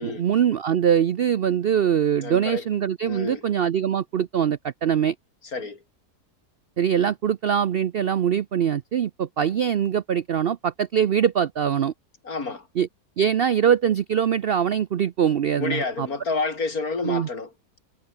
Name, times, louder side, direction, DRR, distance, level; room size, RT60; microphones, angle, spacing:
voice 1, 0.0-5.1 6.8-11.9 12.8-12.9 13.2-16.1 17.0-17.3, right 8 dB, 65° right, 0.5 m, -23 dB
voice 2, 2.2-2.6 3.0-3.4 5.5-5.8 12.2-12.7 15.6-17.5, left 4 dB, 60° left, 3.7 m, -29 dB
omnidirectional pair, 1.7 m